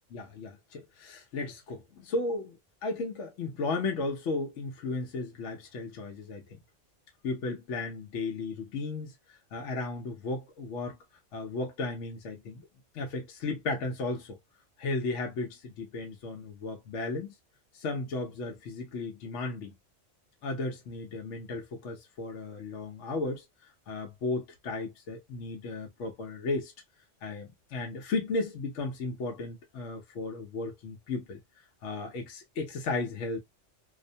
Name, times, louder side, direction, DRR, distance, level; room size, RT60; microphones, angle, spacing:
voice 1, 0.1-2.6 2.8-6.6 7.2-11.0 11.3-12.6 12.9-14.4 14.8-17.3 17.7-19.7 20.4-23.4 23.9-26.7 27.2-31.4 31.8-33.4, left 3 dB, 75° left, 1.0 m, -35 dB
2.5 x 2.1 x 2.6 m
omnidirectional pair, 1.3 m